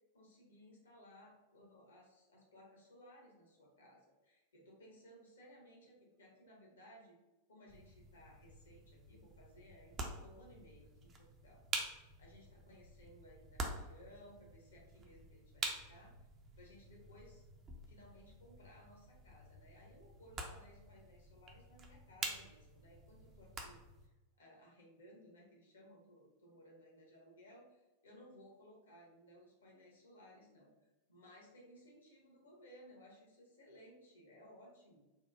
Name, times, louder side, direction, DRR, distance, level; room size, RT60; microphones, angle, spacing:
voice 1, 0.1-7.2 7.5-16.1 16.6-17.4 17.9-35.0, equal, 65° left, -1 dB, 0.8 m, -61 dB
sound 1, 7.7-24.1, right 3 dB, 25° right, 0.4 m, -48 dB
2.8 x 2.1 x 2.4 m, 1.1 s
figure-of-eight pair, 90°, 0 cm